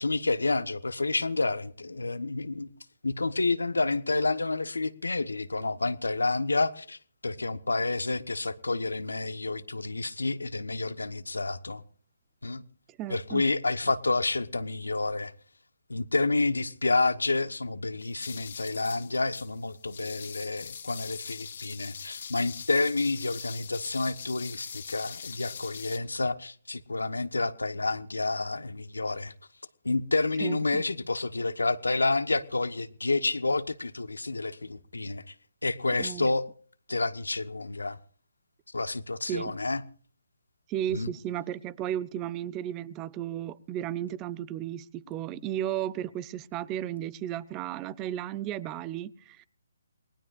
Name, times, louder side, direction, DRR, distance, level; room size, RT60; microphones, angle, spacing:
voice 1, 0.0-2.7 3.0-11.8 12.4-12.6 13.1-15.3 15.9-29.3 29.8-35.3 35.6-36.5 36.9-38.0 38.7-39.8 40.9-41.1, left 3 dB, 85° left, 1.1 m, -29 dB
voice 2, 13.0-13.4 30.4-30.8 36.0-36.3 39.3-39.5 40.7-49.4, right 11 dB, 20° right, 0.6 m, -34 dB
sound 1, 18.0-26.0, left 7 dB, 60° left, 2.1 m, -42 dB
28.5 x 19.5 x 2.5 m
figure-of-eight pair, 145°, 0 cm